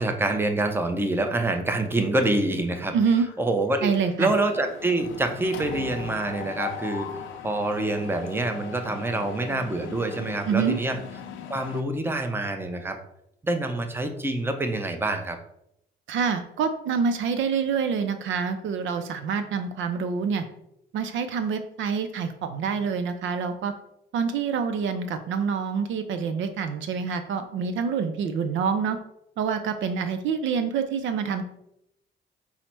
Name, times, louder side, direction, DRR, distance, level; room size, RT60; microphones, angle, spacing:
voice 1, 0.0-2.9 3.4-3.9 4.2-7.1 7.4-11.0 11.5-13.0 13.4-15.4, right 2 dB, 10° right, 6 dB, 0.6 m, -26 dB
Mechanisms, 2.2-2.8 3.2-3.4 3.6-11.8, left 7 dB, 80° left, 0.6 m, -39 dB
voice 2, 2.9-3.3 3.8-4.3 10.5-10.8 16.1-20.4 20.9-23.7 24.1-29.0 29.4-31.4, right 6 dB, 75° right, 9 dB, 0.5 m, -26 dB
5.5 x 2.1 x 4.5 m, 0.79 s
cardioid pair, 90°, 20 cm